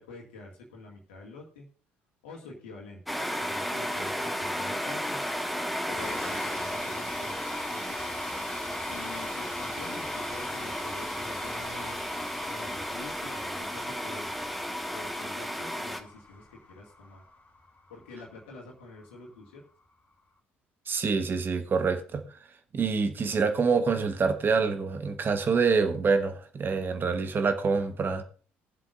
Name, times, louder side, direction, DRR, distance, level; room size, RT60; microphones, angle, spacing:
voice 1, 0.0-1.7 2.2-5.2 5.9-7.4 7.7-8.2 8.7-12.1 12.5-14.3 14.9-17.2 17.9-19.6, left 3 dB, 70° left, 2.1 m, -46 dB
sound 1, 3.1-16.0, equal, ahead, 1.3 m, -34 dB
sound 2, 5.9-20.0, left 3 dB, 30° left, 3.0 m, -44 dB
voice 2, 20.9-22.2 22.7-28.2, right 5 dB, 35° right, 1.3 m, -26 dB
21.5 x 7.5 x 2.6 m
figure-of-eight pair, 50°, 6 cm